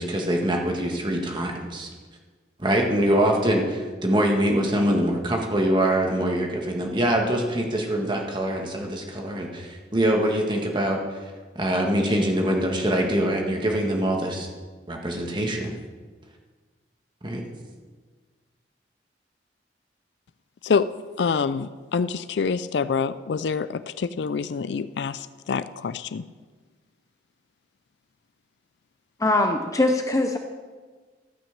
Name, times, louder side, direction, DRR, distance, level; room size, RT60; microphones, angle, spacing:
voice 1, 0.0-1.9 2.6-11.0 11.6-14.5 14.9-15.7 17.2-17.4, right 1 dB, 25° right, 1 dB, 1.7 m, -24 dB
voice 2, 21.2-26.2, left 5 dB, 70° left, 14 dB, 0.4 m, -26 dB
voice 3, 29.2-30.4, left 2 dB, 20° left, 5 dB, 0.6 m, -22 dB
14.0 x 6.0 x 7.3 m, 1.4 s
head